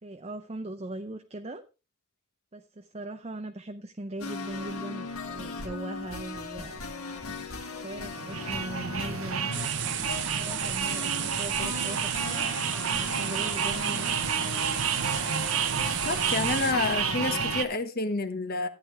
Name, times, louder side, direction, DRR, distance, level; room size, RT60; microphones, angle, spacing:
voice 1, 0.0-1.6 2.5-6.9 7.7-9.5 10.3-14.0, right 1 dB, 30° right, 6 dB, 0.6 m, -39 dB
sound 1, 4.2-17.6, left 4 dB, 90° left, 2.0 m, -39 dB
sound 2, 8.1-17.7, right 6 dB, 75° right, 1.1 m, -30 dB
sound 3, 9.5-16.7, right 11 dB, 55° right, 0.9 m, -34 dB
voice 2, 16.0-18.7, left 3 dB, 45° left, 8 dB, 1.3 m, -29 dB
14.0 x 9.1 x 3.4 m, 0.30 s
head